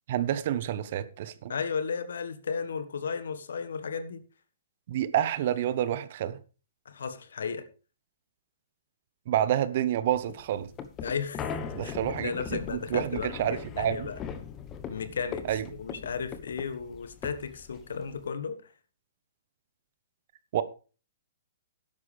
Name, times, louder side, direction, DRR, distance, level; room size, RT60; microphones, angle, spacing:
voice 1, 0.1-1.5 4.9-6.4 9.3-10.7 11.7-14.1 15.5-15.6 20.5-20.6, right 11 dB, 50° right, 1.1 m, -28 dB
voice 2, 1.5-4.2 6.8-7.7 11.0-11.4 11.8-11.9 12.2-14.2 14.9-18.6, left 6 dB, 70° left, 1.5 m, -34 dB
sound 1, 10.1-18.3, left 7 dB, 25° left, 1.2 m, -40 dB
12.5 x 10.5 x 3.4 m
figure-of-eight pair, 120°, 0 cm